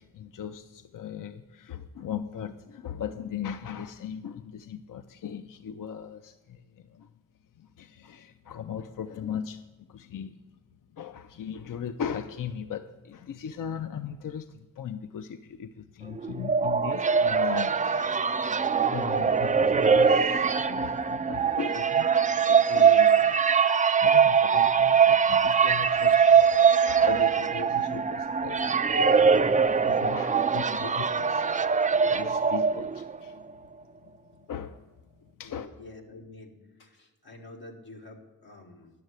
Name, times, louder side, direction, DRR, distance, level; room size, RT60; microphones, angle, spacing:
voice 1, 0.0-7.1 7.6-10.4 10.9-18.5 18.9-23.4 23.8-29.5 29.8-31.5 32.0-33.4 34.0-34.1 34.4-34.8 35.2-35.7, left 8 dB, 60° left, 9 dB, 0.5 m, -38 dB
sound 1, 16.2-33.2, right 6 dB, 20° right, 0.3 m, -22 dB
voice 2, 35.4-38.9, left 2 dB, 90° left, 0 dB, 1.8 m, -48 dB
10.5 x 6.5 x 8.1 m, 1.1 s
cardioid pair, 50°, 37 cm